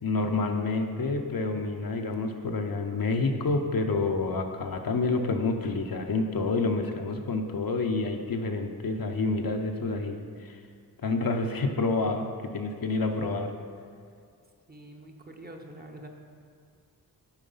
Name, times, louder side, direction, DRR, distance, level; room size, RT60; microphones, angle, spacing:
voice 1, 0.0-10.6 11.0-13.5, left 3 dB, 55° left, 4 dB, 0.8 m, -28 dB
voice 2, 14.7-16.1, right 1 dB, 20° right, 2 dB, 0.9 m, -45 dB
9.0 x 4.6 x 5.6 m, 2.2 s
cardioid pair, 65°, 42 cm